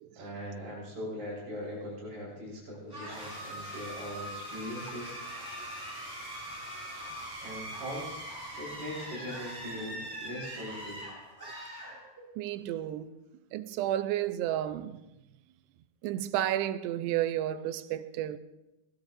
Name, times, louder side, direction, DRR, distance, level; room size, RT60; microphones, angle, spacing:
voice 1, 0.2-5.2 7.4-8.2 8.6-11.0, equal, 55° right, 7.7 m, -40 dB
sound 1, 2.9-12.5, right 1 dB, 5° right, 6.5 m, -42 dB
voice 2, 12.4-13.2 13.5-15.0 16.0-18.4, right 12 dB, 90° right, 2.8 m, -32 dB
23.0 x 18.5 x 2.6 m
omnidirectional pair, 4.7 m